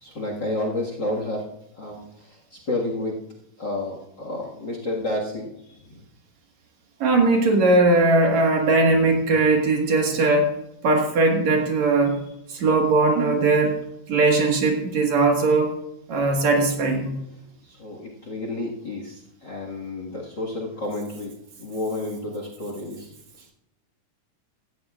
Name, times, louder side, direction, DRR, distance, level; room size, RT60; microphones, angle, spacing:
voice 1, 0.0-1.5 1.7-3.1 3.6-6.0 17.6-21.3 21.6-23.5, left 2 dB, 40° left, 1 dB, 1.9 m, -31 dB
voice 2, 7.0-10.5 10.8-12.2 12.5-13.7 14.1-15.8 16.1-17.1, right 3 dB, 60° right, 2 dB, 2.8 m, -19 dB
17.0 x 14.0 x 2.4 m, 0.83 s
omnidirectional pair, 3.8 m